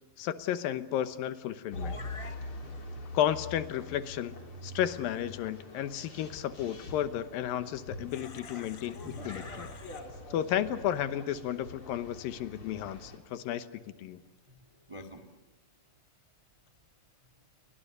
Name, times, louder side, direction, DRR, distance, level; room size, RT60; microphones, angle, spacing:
voice 1, 0.2-2.0 3.1-4.3 4.6-9.7 10.3-13.7 14.0-14.2, left 11 dB, 90° left, 11 dB, 2.8 m, -33 dB
sound 1, 1.7-13.2, left 2 dB, 40° left, 4.1 m, -44 dB
voice 2, 1.7-2.4 8.1-10.0 14.5-15.3, left 2 dB, 35° right, 6 dB, 0.5 m, -47 dB
29.5 x 24.0 x 6.8 m, 1.2 s
omnidirectional pair, 4.0 m